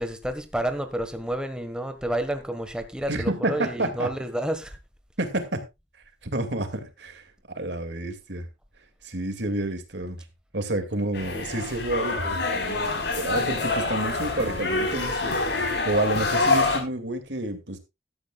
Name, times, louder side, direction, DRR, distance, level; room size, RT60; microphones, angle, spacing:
voice 1, 0.0-4.8, right 1 dB, 5° right, 1.5 m, -30 dB
voice 2, 3.1-4.1 5.2-5.6 6.2-8.5 9.0-10.2 10.5-17.8, right 1 dB, 90° right, 2.4 m, -29 dB
sound 1, 11.1-16.8, left 3 dB, 75° left, 4.4 m, -26 dB
15.0 x 12.5 x 2.4 m
head